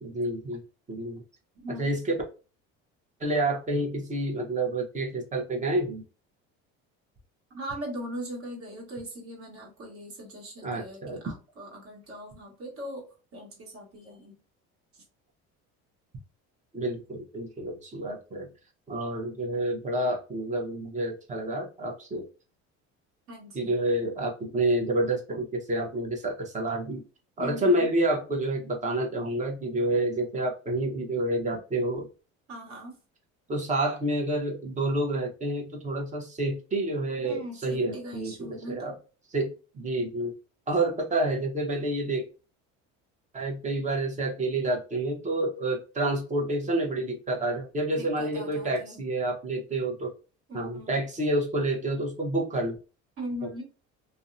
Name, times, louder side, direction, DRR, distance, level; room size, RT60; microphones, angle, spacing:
voice 1, 0.0-0.6 0.9-1.2 1.8-2.2 3.2-6.0 10.6-11.2 16.7-18.5 18.9-22.3 23.5-27.0 27.4-32.1 33.5-38.9 39.3-40.3 40.7-42.3 43.3-50.1 50.5-52.8 53.4-53.7, right 1 dB, 25° right, 1 dB, 0.7 m, -29 dB
voice 2, 1.5-2.0 7.5-14.4 23.3-23.7 27.4-27.9 32.5-33.0 37.2-39.0 47.9-49.1 50.5-51.1 53.2-53.7, equal, 50° right, -1 dB, 1.2 m, -40 dB
2.5 x 2.1 x 2.5 m, 0.34 s
cardioid pair, 120°, 30 cm